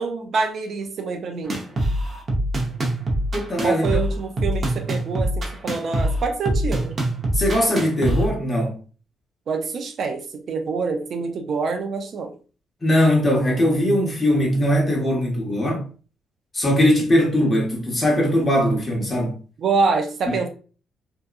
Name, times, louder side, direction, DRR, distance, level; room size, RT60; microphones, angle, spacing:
voice 1, 0.0-1.6 3.6-6.9 9.5-12.3 19.6-20.5, right 4 dB, 60° right, 0.4 m, -26 dB
sound 1, 1.5-8.3, right 1 dB, 35° right, 0.8 m, -24 dB
voice 2, 3.3-3.8 7.3-8.8 12.8-15.9 16.5-19.4 20.3-20.4, equal, 25° left, 1.1 m, -20 dB
2.7 x 2.2 x 2.3 m
cardioid pair, 90°, 0 cm